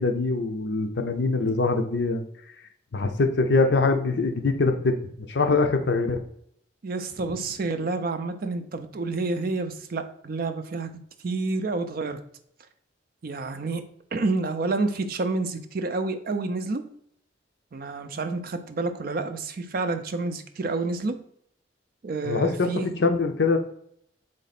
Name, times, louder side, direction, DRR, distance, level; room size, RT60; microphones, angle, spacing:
voice 1, 0.0-2.2 2.9-4.9 5.3-6.2 22.2-22.7 23.0-23.6, left 3 dB, 65° left, 6 dB, 0.6 m, -23 dB
voice 2, 6.8-12.2 13.2-13.8 14.1-16.8 17.7-21.2 22.0-23.0, right 3 dB, 50° right, 8 dB, 0.5 m, -29 dB
4.0 x 3.2 x 4.1 m, 0.69 s
head